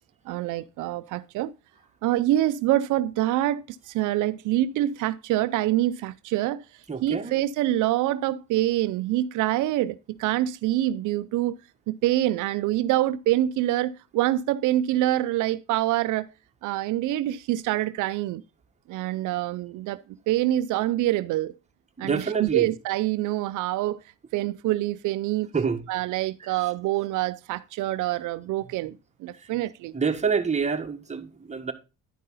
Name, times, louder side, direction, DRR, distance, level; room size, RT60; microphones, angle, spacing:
voice 1, 0.3-1.5 2.0-6.6 7.0-11.6 11.9-16.3 16.6-18.4 18.9-20.0 20.3-21.5 22.0-24.0 24.3-25.5 25.9-29.9, right 14 dB, 85° right, 0.5 m, -25 dB
voice 2, 6.9-7.3 22.0-22.7 25.5-25.8 29.9-31.7, right 5 dB, 25° right, 1.4 m, -27 dB
11.0 x 5.4 x 4.0 m
cardioid pair, 90°, 30 cm